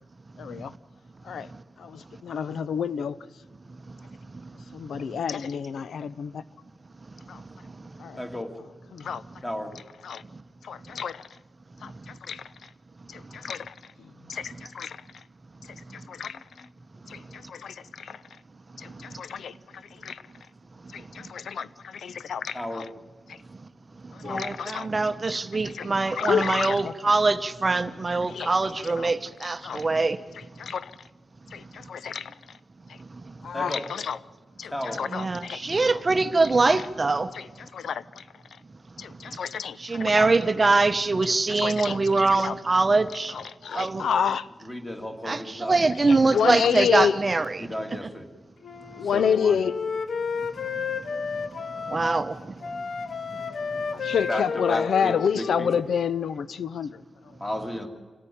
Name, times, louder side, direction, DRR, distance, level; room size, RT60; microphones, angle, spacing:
voice 1, 0.4-0.7 1.2-1.5 1.8-3.2 4.7-6.4 7.3-7.4 8.0-8.2 8.9-9.2 10.0-10.2 10.6-11.3 11.8-12.5 13.1-13.7 14.3-15.0 16.1-16.4 17.1-18.2 18.8-19.5 20.0-20.2 20.9-22.9 23.3-23.4 24.2-24.9 25.6-26.9 28.3-28.5 28.8-29.1 29.6-29.9 30.6-30.9 31.5-32.3 33.5-34.2 34.6-36.0 36.7-36.8 37.3-38.2 39.0-40.3 41.5-42.0 42.3-42.5 43.3-44.5 46.0-47.2 49.0-49.8 53.9-57.0, left 7 dB, 80° left, 0.7 m, -29 dB
voice 2, 8.2-8.5 9.4-9.7 16.3-16.7 22.5-22.9 33.5-33.8 34.6-35.0 44.6-45.8 46.2-46.6 47.6-48.3 49.1-49.6 52.6-52.7 53.3-55.7 57.4-57.9, left 1 dB, 15° left, 2.1 m, -34 dB
voice 3, 24.2-30.2 35.1-37.3 39.8-43.3 43.7-44.1 45.2-48.1 51.9-52.4, right 3 dB, 25° right, 0.7 m, -23 dB
Wind instrument woodwind instrument, 48.6-52.3 52.6-56.2, left 5 dB, 55° left, 0.9 m, -32 dB
26.0 x 14.5 x 10.0 m
wide cardioid pair, 155°, 0 cm